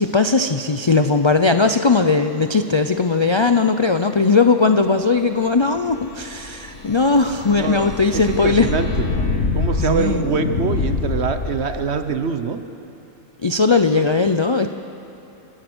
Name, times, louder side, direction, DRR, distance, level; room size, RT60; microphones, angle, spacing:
voice 1, 0.0-8.7 9.8-10.2 13.4-14.7, left 4 dB, 35° left, 7 dB, 0.4 m, -18 dB
sound 1, 5.6-12.0, left 3 dB, 75° left, 2.0 m, -25 dB
voice 2, 7.5-9.1 9.5-12.6, right 5 dB, 60° right, 8 dB, 1.2 m, -24 dB
27.5 x 15.5 x 6.2 m, 3.0 s
omnidirectional pair, 1.3 m